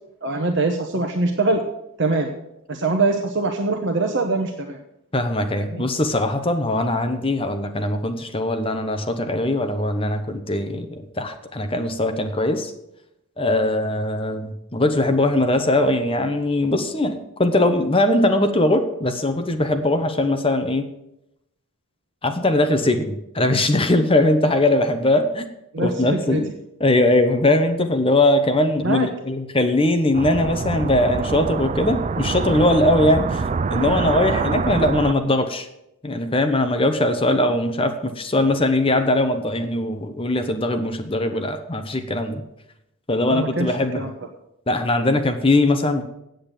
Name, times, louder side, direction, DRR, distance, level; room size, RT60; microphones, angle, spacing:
voice 1, 0.2-1.6 2.0-2.3 2.7-4.8 5.7-5.8 25.7-25.9 26.3-26.4 28.8-29.1 43.3-43.7 44.0-44.1, right 3 dB, 55° right, 3 dB, 1.0 m, -22 dB
voice 2, 5.1-12.7 13.4-20.9 22.2-25.4 25.8-26.5 26.8-35.7 36.0-42.4 43.1-44.1 44.7-46.0, left 1 dB, 25° left, 7 dB, 0.9 m, -20 dB
sound 1, 30.1-35.1, right 4 dB, 30° right, 0.3 m, -25 dB
8.6 x 7.8 x 9.0 m, 0.85 s
head